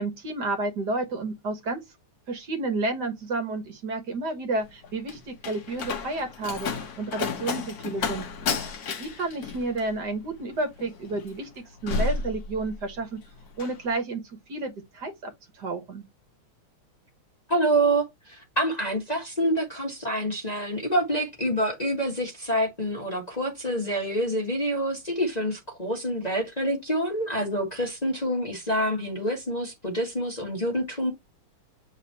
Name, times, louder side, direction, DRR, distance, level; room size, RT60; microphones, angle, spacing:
voice 1, 0.0-1.8 2.3-6.7 7.0-8.2 9.0-11.5 11.8-13.2 13.6-16.1, right 2 dB, 55° right, 1.7 m, -31 dB
Slam, 4.6-13.0 13.3-13.8, left 4 dB, 55° left, 1.4 m, -32 dB
voice 2, 17.5-31.1, right 1 dB, 20° left, 1.4 m, -27 dB
8.2 x 4.0 x 2.8 m
omnidirectional pair, 2.3 m